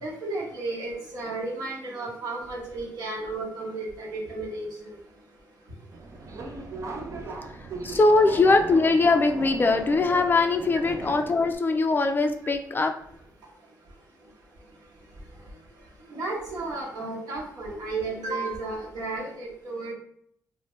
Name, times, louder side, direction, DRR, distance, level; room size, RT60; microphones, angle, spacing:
voice 1, 0.0-5.0 16.1-19.9, right 3 dB, 70° right, -3 dB, 1.1 m, -33 dB
Subway metro underground, 5.9-11.6, right 3 dB, 50° right, 0.4 m, -37 dB
voice 2, 7.8-12.9, left 3 dB, 30° left, 6 dB, 0.3 m, -21 dB
2.8 x 2.1 x 3.0 m, 0.65 s
cardioid pair, 95°, 7 cm